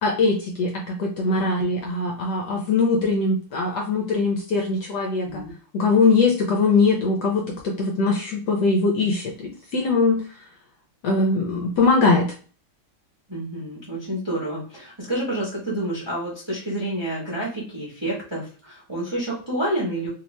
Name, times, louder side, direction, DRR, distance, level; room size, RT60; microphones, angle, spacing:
voice 1, 0.0-5.4 5.7-10.2 11.0-12.3, left 3 dB, 70° left, 0 dB, 1.1 m, -21 dB
voice 2, 13.3-20.1, right 1 dB, 20° right, -5 dB, 0.8 m, -29 dB
3.1 x 2.8 x 3.1 m, 0.38 s
omnidirectional pair, 2.2 m